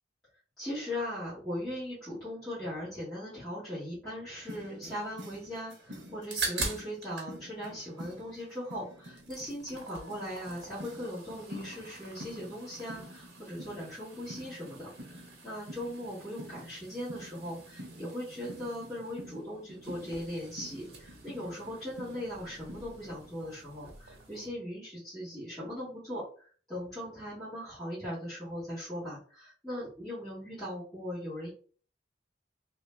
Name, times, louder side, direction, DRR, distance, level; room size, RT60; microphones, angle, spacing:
voice 1, 0.6-31.5, equal, 5° left, -14 dB, 1.8 m, -39 dB
sound 1, 4.4-23.3, equal, 85° right, 1.0 m, -49 dB
sound 2, 6.3-7.3 7.6-8.7 9.0-24.5, right 3 dB, 60° right, 1.5 m, -44 dB
3.1 x 2.8 x 3.3 m, 0.42 s
head